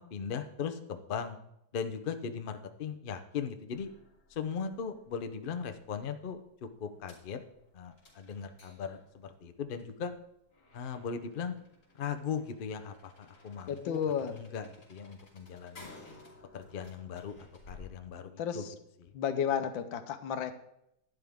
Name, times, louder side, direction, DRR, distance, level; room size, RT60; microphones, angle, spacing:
voice 1, 0.0-1.4 1.7-3.9 4.3-7.4 7.7-10.1 10.7-11.5 11.9-14.0 14.3-15.9 16.5-18.6 19.0-19.1, left 6 dB, 75° left, 8 dB, 0.5 m, -38 dB
sound 1, 3.7-17.9, left 3 dB, 55° left, 3.6 m, -57 dB
voice 2, 13.7-14.4 18.4-18.7 19.1-20.5, left 8 dB, 90° left, 10 dB, 1.6 m, -32 dB
11.5 x 9.9 x 3.6 m, 0.79 s
omnidirectional pair, 2.0 m